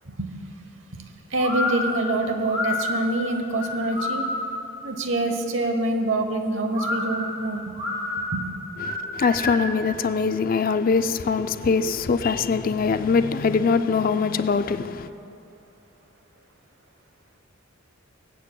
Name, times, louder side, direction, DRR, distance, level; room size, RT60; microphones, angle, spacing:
voice 1, 0.0-0.4 0.9-4.3 4.8-7.8 8.3-8.5, right 2 dB, 70° right, 1.0 m, -26 dB
sound 1, 1.4-4.7 6.7-9.8, left 2 dB, 20° right, 1.5 m, -29 dB
voice 2, 8.9-15.1, left 5 dB, 45° left, 0.4 m, -23 dB
23.0 x 8.5 x 2.2 m
head